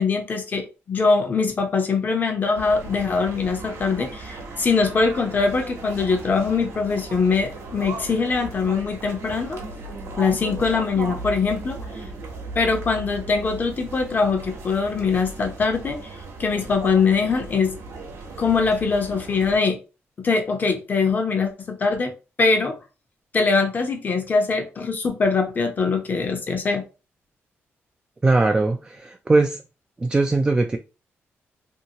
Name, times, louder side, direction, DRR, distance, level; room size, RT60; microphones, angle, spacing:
voice 1, 0.0-9.6 10.2-11.8 12.5-16.0 16.4-17.7 18.4-19.8 20.2-22.1 22.4-22.8 23.3-26.8, left 4 dB, 40° left, 0.7 m, -22 dB
sound 1, 2.5-19.6, right 3 dB, 80° right, 0.9 m, -37 dB
voice 2, 28.2-29.6 30.0-30.8, right 2 dB, 20° right, 0.3 m, -20 dB
2.7 x 2.6 x 2.8 m
cardioid pair, 105°, 5 cm